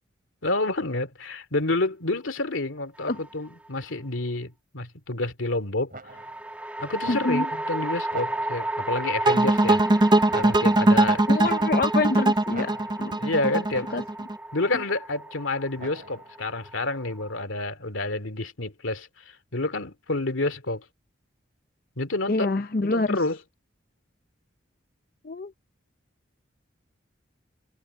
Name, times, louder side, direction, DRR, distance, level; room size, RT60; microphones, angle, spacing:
voice 1, 0.4-5.9 6.8-9.8 10.3-11.3 13.2-13.9 14.5-20.8 22.0-22.5 22.8-23.4, left 2 dB, 90° left, 2.6 m, -29 dB
sound 1, 3.0-3.7 6.1-17.4, right 1 dB, 5° right, 1.9 m, -33 dB
sound 2, 5.9-6.5 7.0-7.6 8.1-8.8 9.2-9.9 10.3-11.0 11.4-12.1 12.5-13.2 13.7-14.3 15.8-16.4, right 2 dB, 45° right, 5.6 m, -43 dB
voice 2, 7.1-7.5 11.3-12.7 13.0-13.2 13.9-14.0 22.3-23.2 25.2-25.5, left 3 dB, 45° left, 0.6 m, -26 dB
sound 3, 9.2-14.3, right 2 dB, 25° right, 0.5 m, -21 dB
head